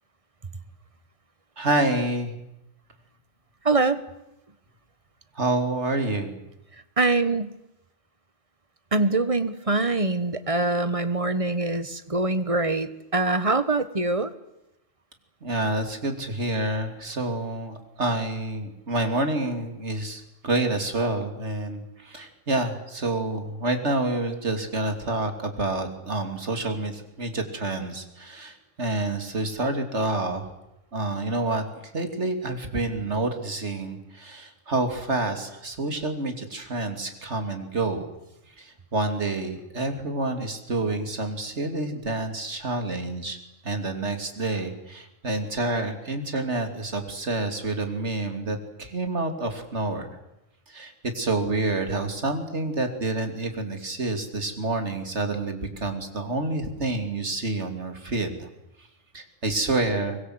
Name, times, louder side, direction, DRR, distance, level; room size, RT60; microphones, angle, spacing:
voice 1, 1.6-2.4 5.3-6.4 15.4-30.5 30.9-38.1 38.6-43.4 43.6-50.2 50.7-58.5 59.1-60.2, right 2 dB, 60° right, 6 dB, 3.2 m, -28 dB
voice 2, 3.6-4.0 7.0-7.5 8.9-14.3, right 3 dB, 25° right, 13 dB, 1.3 m, -24 dB
24.0 x 21.0 x 8.0 m, 0.89 s
omnidirectional pair, 1.3 m